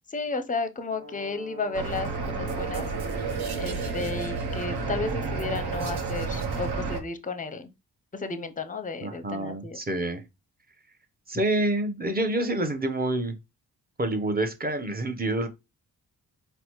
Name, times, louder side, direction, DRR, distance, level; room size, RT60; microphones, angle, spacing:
voice 1, 0.1-2.9 3.6-7.7 8.1-9.8, left 3 dB, 20° left, 0.6 m, -33 dB
Brass instrument, 0.9-6.9, right 2 dB, 40° right, 1.7 m, -44 dB
sound 1, 1.7-7.0, right 4 dB, 65° right, 0.8 m, -31 dB
voice 2, 9.0-10.2 11.3-13.3 14.0-15.5, right 1 dB, 20° right, 0.8 m, -27 dB
4.1 x 2.1 x 3.0 m
supercardioid pair, 45°, 41 cm